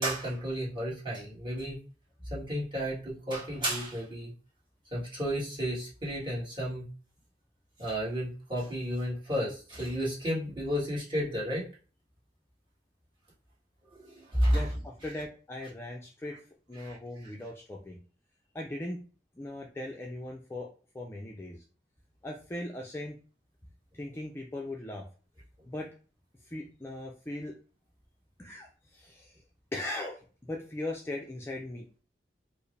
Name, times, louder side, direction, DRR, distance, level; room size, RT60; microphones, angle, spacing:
voice 1, 0.0-1.8 2.3-4.3 4.9-6.9 7.8-11.6 13.9-14.7 16.8-17.0, equal, 30° right, -7 dB, 1.7 m, -32 dB
voice 2, 14.5-16.4 16.7-18.0 18.5-19.0 19.3-20.7 20.9-21.6 22.2-23.2 23.9-25.1 25.7-25.9 26.4-27.5 28.4-29.4 29.7-31.8, left 1 dB, 15° left, 0 dB, 0.4 m, -39 dB
4.6 x 2.1 x 3.2 m, 0.37 s
head